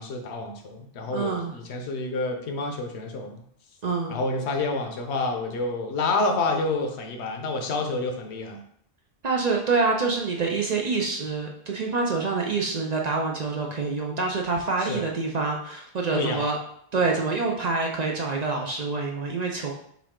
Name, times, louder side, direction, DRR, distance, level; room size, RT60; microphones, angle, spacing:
voice 1, 0.0-3.4 4.1-8.6 14.8-15.1 16.1-16.4, left 3 dB, 75° left, 3 dB, 1.0 m, -28 dB
voice 2, 1.1-1.5 3.8-4.2 9.2-16.6 16.9-19.7, right 4 dB, 50° right, 0 dB, 0.5 m, -26 dB
5.7 x 2.4 x 3.6 m, 0.69 s
omnidirectional pair, 1.1 m